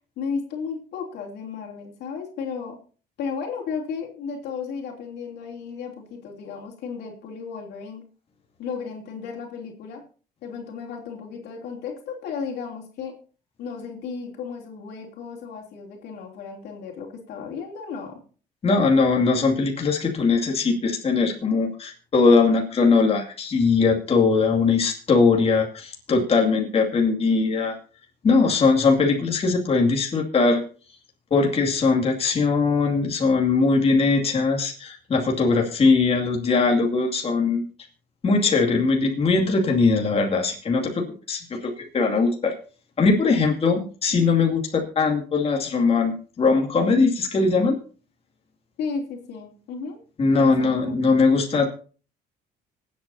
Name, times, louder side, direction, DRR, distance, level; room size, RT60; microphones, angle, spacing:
voice 1, 0.2-2.8 3.2-8.0 8.6-10.0 10.4-13.2 13.6-18.2 48.8-50.0 50.4-51.0, left 5 dB, 75° left, 0 dB, 3.1 m, -34 dB
voice 2, 18.6-27.8 28.2-30.6 31.3-37.6 38.2-42.5 43.0-47.8 50.2-51.7, left 4 dB, 35° left, 0 dB, 2.5 m, -20 dB
25.5 x 8.5 x 2.8 m, 0.38 s
cardioid pair, 110°, 17 cm